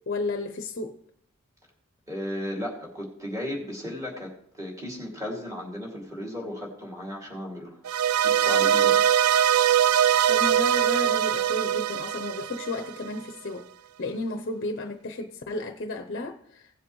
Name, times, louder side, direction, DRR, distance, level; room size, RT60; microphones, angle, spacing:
voice 1, 0.1-1.0 8.7-9.0 10.3-13.7 14.0-16.8, left 2 dB, 50° left, 6 dB, 0.7 m, -33 dB
voice 2, 2.1-7.8 8.2-9.0, left 1 dB, 15° right, -3 dB, 2.4 m, -35 dB
sound 1, 7.8-13.1, right 10 dB, 85° right, 0.3 m, -22 dB
16.5 x 7.5 x 3.2 m, 0.71 s
head